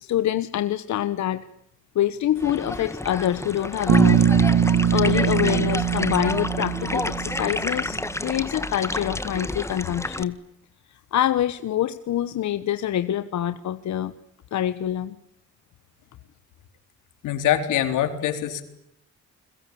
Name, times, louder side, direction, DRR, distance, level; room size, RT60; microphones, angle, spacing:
voice 1, 0.0-1.5 1.9-4.3 4.9-10.4 11.1-14.2 14.5-15.2, left 11 dB, 70° left, 12 dB, 1.2 m, -25 dB
sound 1, 2.4-10.2, left 1 dB, 10° left, 1.8 m, -30 dB
Bass guitar, 3.9-7.9, right 8 dB, 65° right, 2.2 m, -21 dB
voice 2, 17.2-18.6, left 11 dB, 90° left, 7 dB, 4.0 m, -24 dB
30.0 x 22.5 x 8.6 m, 0.79 s
cardioid pair, 90°, 30 cm